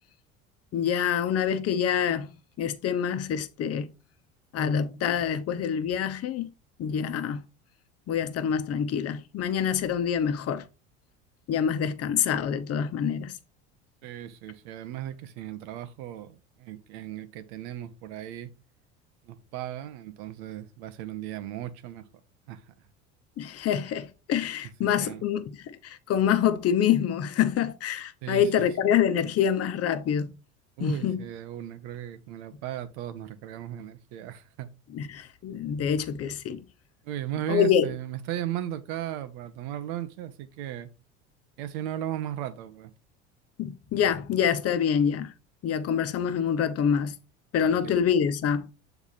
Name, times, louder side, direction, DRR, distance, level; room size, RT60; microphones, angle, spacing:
voice 1, 0.7-2.3 2.6-3.9 4.5-6.5 6.8-7.4 8.1-10.6 11.5-13.3 23.4-30.3 30.8-31.2 34.9-36.6 37.5-37.9 43.6-45.3 45.6-47.1 47.5-48.7, left 8 dB, 45° left, 1.0 m, -26 dB
voice 2, 14.0-18.5 19.2-22.0 22.5-22.6 24.8-25.2 28.2-28.7 30.8-34.7 37.0-40.9 41.6-42.9 47.6-47.9, right 12 dB, 70° right, 1.0 m, -36 dB
7.1 x 3.5 x 4.1 m
hypercardioid pair, 80°, 34 cm